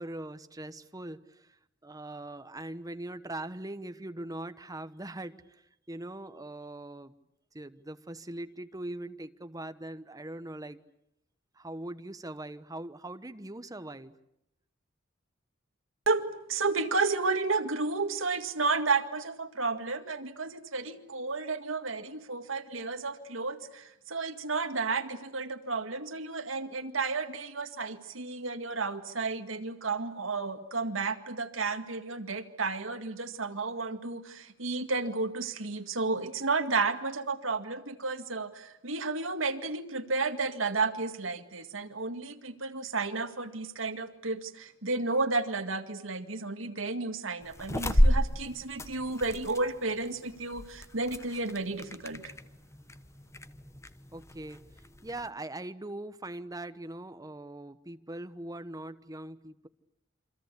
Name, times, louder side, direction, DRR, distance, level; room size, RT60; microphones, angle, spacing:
voice 1, 0.0-1.6 1.8-5.6 5.9-7.1 7.5-10.8 11.5-14.2 54.1-54.6 55.0-59.7, right 1 dB, 20° right, 11 dB, 1.1 m, -41 dB
voice 2, 16.1-52.3, right 3 dB, 80° right, 8 dB, 2.0 m, -32 dB
sound 1, 47.4-55.3, equal, 15° left, 1.1 m, -32 dB
28.0 x 25.0 x 8.3 m, 0.80 s
head